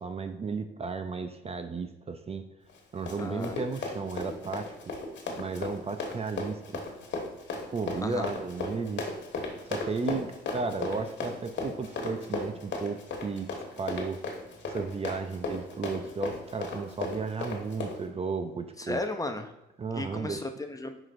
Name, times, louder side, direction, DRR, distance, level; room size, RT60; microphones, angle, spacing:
voice 1, 0.0-2.5 2.9-4.9 5.4-6.9 7.7-9.1 9.7-14.2 14.7-19.0 19.8-20.5, right 4 dB, 30° right, 8 dB, 0.5 m, -34 dB
Run, 2.7-18.0, left 3 dB, 65° left, 1.5 m, -35 dB
voice 2, 3.2-3.5 8.0-8.3 18.8-19.5 19.9-21.0, left 2 dB, 15° left, 6 dB, 0.6 m, -35 dB
7.3 x 5.0 x 2.6 m, 0.95 s
cardioid pair, 90°, 20 cm